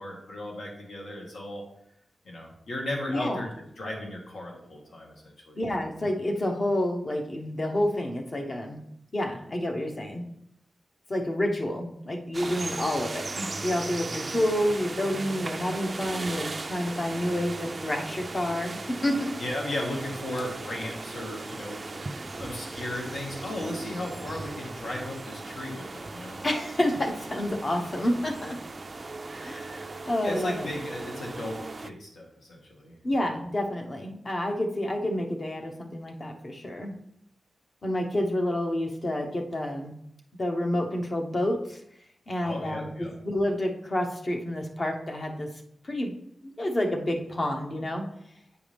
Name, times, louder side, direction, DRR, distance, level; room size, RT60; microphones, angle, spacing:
voice 1, 0.0-1.6 2.2-3.5 3.8-5.6 12.6-12.8 19.4-26.4 30.2-32.9 42.4-43.1, left 1 dB, 70° left, -1 dB, 1.7 m, -36 dB
voice 2, 3.1-3.4 5.6-8.8 9.1-10.2 11.1-19.3 26.4-28.6 29.4-30.7 33.0-36.9 37.8-39.9 40.4-41.8 42.3-45.5 45.8-46.1 46.6-48.0, left 1 dB, 35° left, 2 dB, 1.0 m, -29 dB
sound 1, 12.3-31.9, right 3 dB, 35° right, 0.4 m, -37 dB
9.0 x 4.8 x 3.4 m, 0.74 s
wide cardioid pair, 120°, 0 cm